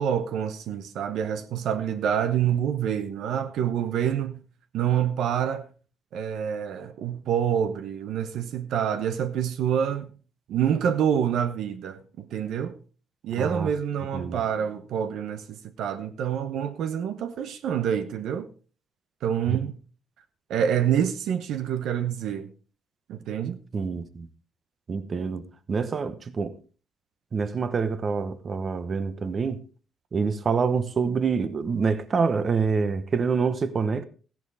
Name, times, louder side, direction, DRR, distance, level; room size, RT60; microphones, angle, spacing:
voice 1, 0.0-4.4 4.7-5.7 6.1-10.1 10.5-12.8 13.2-18.5 19.2-19.7 20.5-22.5 23.1-23.6, right 9 dB, 80° right, 0.9 m, -27 dB
voice 2, 13.4-13.7 14.1-14.4 19.5-19.6 23.7-24.3 24.9-26.6 27.3-29.6 30.1-34.1, right 5 dB, 45° right, 1.0 m, -26 dB
14.5 x 10.5 x 3.6 m
cardioid pair, 90°, 0 cm